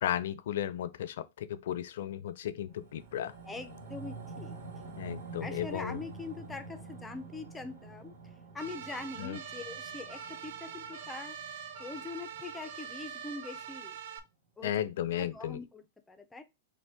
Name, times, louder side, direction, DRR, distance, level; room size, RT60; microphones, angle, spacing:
voice 1, 0.0-3.4 5.0-6.0 9.2-9.4 14.6-15.6, left 11 dB, 65° left, 0.5 m, -34 dB
sound 1, 2.7-13.3 13.6-13.7, right 4 dB, 80° right, 1.9 m, -48 dB
voice 2, 3.5-4.5 5.4-8.1 8.5-11.4 11.8-14.0 14.6-14.7 15.2-16.4, left 3 dB, 5° left, 0.4 m, -43 dB
sound 2, 8.6-14.2, right 7 dB, 55° right, 0.5 m, -43 dB
5.2 x 2.1 x 3.5 m
supercardioid pair, 170°, 0 cm